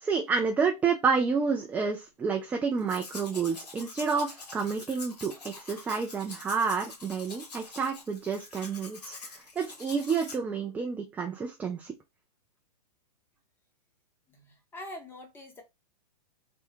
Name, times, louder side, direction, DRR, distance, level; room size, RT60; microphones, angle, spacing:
voice 1, 0.0-9.2 9.6-12.0, right 5 dB, 5° right, 0.3 m, -29 dB
Domestic sounds home sounds, 2.8-10.4, left 3 dB, 85° left, 1.5 m, -45 dB
voice 2, 14.3-15.6, left 1 dB, 10° left, 0.9 m, -44 dB
3.4 x 2.2 x 4.3 m
hypercardioid pair, 135°, 20 cm